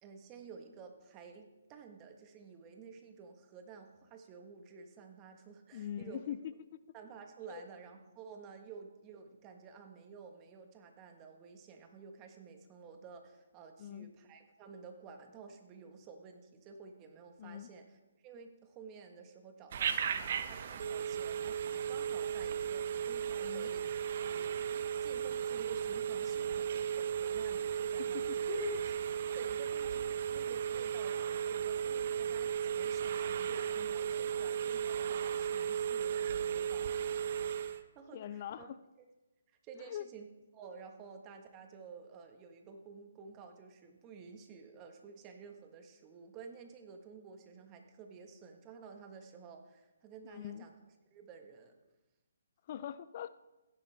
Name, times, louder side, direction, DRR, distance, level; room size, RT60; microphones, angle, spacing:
voice 1, 0.0-6.3 6.9-21.6 21.9-23.9 24.2-28.4 29.3-36.9 37.2-38.7 39.5-40.3 40.5-50.7 51.1-51.7, right 5 dB, 25° right, 4 dB, 1.5 m, -52 dB
voice 2, 5.7-6.8 7.5-7.6 13.8-14.1 17.4-17.7 23.4-23.7 28.1-28.9 38.1-38.8 39.8-40.0 50.2-50.7 52.7-53.3, left 10 dB, 40° left, 15 dB, 0.4 m, -42 dB
Telephone, 19.7-37.8, right 8 dB, 50° right, 0.9 m, -35 dB
15.5 x 10.5 x 3.5 m, 1.1 s
hypercardioid pair, 150°, 0 cm